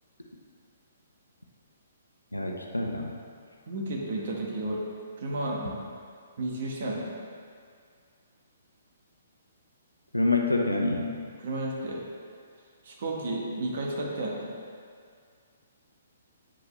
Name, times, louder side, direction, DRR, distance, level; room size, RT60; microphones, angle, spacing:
voice 1, 2.3-3.1 10.1-11.1, left 2 dB, 90° left, 2 dB, 0.7 m, -26 dB
voice 2, 3.7-4.9 5.2-5.8 6.4-7.1 11.4-12.0 12.8-14.5, right 1 dB, 50° right, -2 dB, 1.3 m, -32 dB
8.9 x 4.8 x 3.2 m, 2.2 s
figure-of-eight pair, 125°, 0 cm